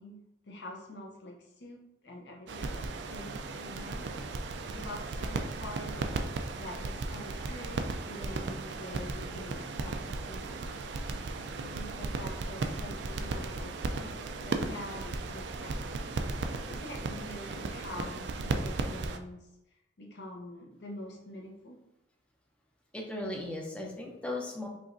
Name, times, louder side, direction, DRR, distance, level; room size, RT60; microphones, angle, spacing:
voice 1, 0.0-4.2 4.7-6.1 6.5-10.7 11.6-16.0 16.4-21.8, left 1 dB, 65° left, 0 dB, 0.8 m, -46 dB
sound 1, 2.5-19.2, right 3 dB, 65° right, 0.4 m, -36 dB
voice 2, 22.9-24.7, left 1 dB, 5° left, -1 dB, 0.5 m, -37 dB
5.0 x 2.9 x 2.6 m, 0.92 s
head